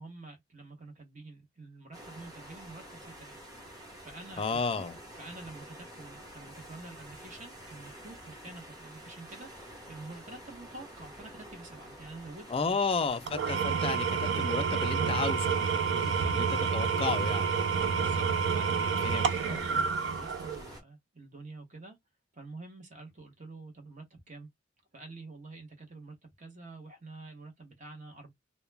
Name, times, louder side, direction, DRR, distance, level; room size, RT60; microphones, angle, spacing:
voice 1, 0.0-4.9 5.2-13.2 15.9-16.3 17.9-22.0 22.3-24.5 24.9-28.3, right 3 dB, 45° right, 0.8 m, -48 dB
sound 1, 1.9-20.8, right 1 dB, 20° right, 1.0 m, -49 dB
voice 2, 4.4-5.0 12.5-15.6 16.3-16.5 16.7-17.6 19.0-19.6, left 4 dB, 30° left, 0.4 m, -32 dB
Engine / Tools, 13.3-20.7, right 6 dB, 80° right, 0.4 m, -29 dB
2.2 x 2.1 x 3.2 m
head